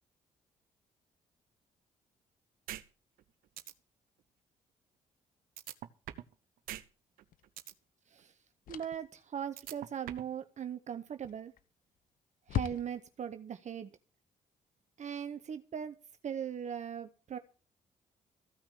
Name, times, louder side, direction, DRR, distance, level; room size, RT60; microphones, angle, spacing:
sound 1, 2.7-2.8 3.2-3.3 3.6-3.7 5.6-6.3 6.7-6.8 7.2-7.7 9.6-10.3, right 13 dB, 75° right, 0.9 m, -42 dB
sound 2, 7.3-7.5 8.7-9.1 11.2-11.7 12.0-12.1 12.5-13.3, left 11 dB, 70° left, 0.8 m, -38 dB
voice 1, 8.7-11.5 12.5-13.9 15.0-15.9 16.2-17.4, right 8 dB, 55° right, 10 dB, 0.9 m, -39 dB
15.0 x 5.9 x 8.1 m, 0.37 s
hypercardioid pair, 50°, 15 cm